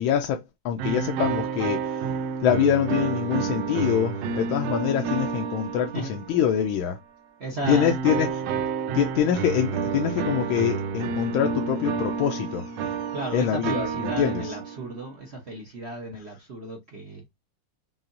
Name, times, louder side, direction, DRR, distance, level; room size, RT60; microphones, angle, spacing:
voice 1, 0.0-7.0 7.7-8.4 8.9-14.6, left 9 dB, 75° left, 1.3 m, -25 dB
sound 1, 0.8-6.6 7.6-15.0, right 6 dB, 75° right, 1.0 m, -29 dB
voice 2, 7.4-8.0 9.2-9.3 13.1-17.2, right 2 dB, 45° right, 0.9 m, -34 dB
5.6 x 2.7 x 2.6 m
omnidirectional pair, 2.4 m